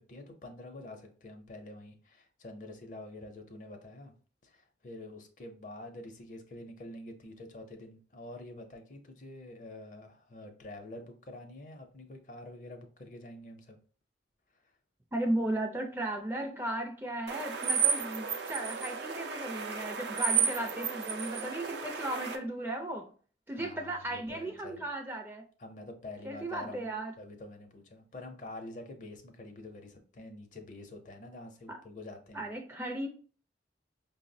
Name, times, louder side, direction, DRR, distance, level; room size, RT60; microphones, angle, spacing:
voice 1, 0.0-4.1 4.4-13.8 23.5-24.8 25.6-26.9 27.2-32.5, left 2 dB, 45° left, 0.5 m, -47 dB
voice 2, 15.1-23.1 23.5-25.5 26.2-27.1 31.7-31.8 32.3-33.1, right 1 dB, 10° right, 0.4 m, -36 dB
sound 1, 17.3-22.4, right 7 dB, 75° right, 0.5 m, -32 dB
5.3 x 2.0 x 2.6 m
head